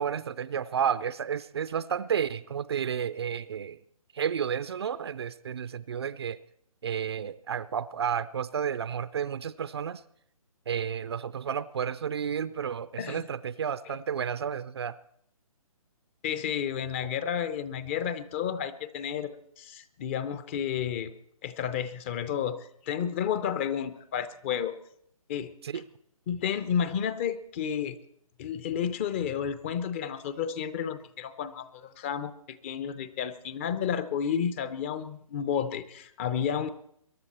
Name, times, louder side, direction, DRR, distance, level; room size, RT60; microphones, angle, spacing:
voice 1, 0.0-3.8 4.1-6.4 6.8-10.0 10.7-15.0 25.6-25.8, right 8 dB, 45° right, 16 dB, 0.5 m, -31 dB
voice 2, 16.2-21.1 21.4-24.7 25.3-25.5 26.3-28.0 28.4-36.7, left 8 dB, 20° left, 13 dB, 0.6 m, -31 dB
23.0 x 11.0 x 4.2 m, 0.69 s
figure-of-eight pair, 140°, 19 cm